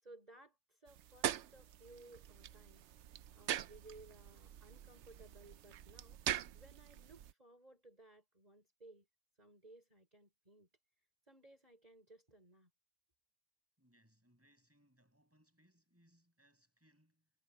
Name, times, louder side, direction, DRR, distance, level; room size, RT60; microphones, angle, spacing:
voice 1, 0.0-2.9 3.3-6.2 6.5-9.1 9.4-10.7 11.3-12.7, right 2 dB, 30° right, 5.2 m, -60 dB
sound 1, 0.9-7.3, right 11 dB, 70° right, 0.9 m, -43 dB
voice 2, 13.8-17.3, equal, 10° right, 6.3 m, -72 dB
omnidirectional pair, 1.3 m